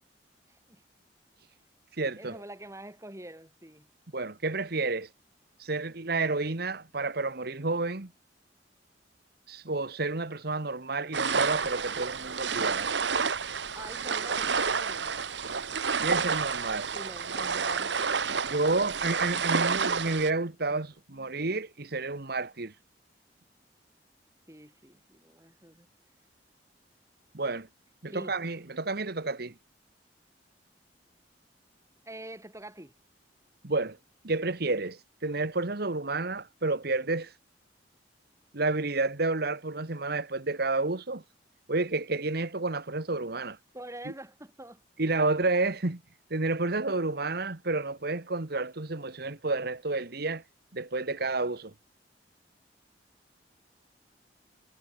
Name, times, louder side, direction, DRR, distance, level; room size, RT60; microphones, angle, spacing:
voice 1, 0.5-0.8 2.2-3.9 13.7-15.4 16.9-18.0 24.5-25.9 28.1-28.4 32.0-32.9 43.7-44.8, right 1 dB, 15° right, 6.0 m, -46 dB
voice 2, 1.9-2.4 4.1-5.1 5.6-8.1 9.5-12.9 16.0-16.9 18.5-22.7 27.3-27.7 28.0-29.5 33.6-34.0 34.2-37.3 38.5-41.2 41.7-43.6 45.0-46.0 46.3-50.4 50.7-51.7, right 3 dB, 60° right, 1.5 m, -30 dB
sound 1, 11.1-20.3, right 5 dB, 80° right, 1.4 m, -29 dB
head